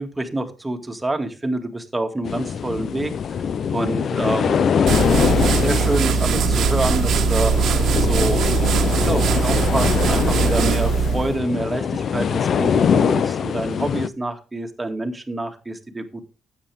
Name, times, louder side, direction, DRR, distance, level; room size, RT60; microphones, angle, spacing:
voice 1, 0.0-3.5 3.7-4.8 5.1-8.5 8.9-16.3, right 2 dB, 15° right, 5 dB, 2.2 m, -27 dB
sound 1, 2.3-14.1, left 7 dB, 55° left, 0.5 m, -22 dB
sound 2, 4.9-11.4, right 6 dB, 70° right, 1.4 m, -20 dB
12.5 x 9.1 x 3.5 m, 0.30 s
cardioid pair, 90°, 0 cm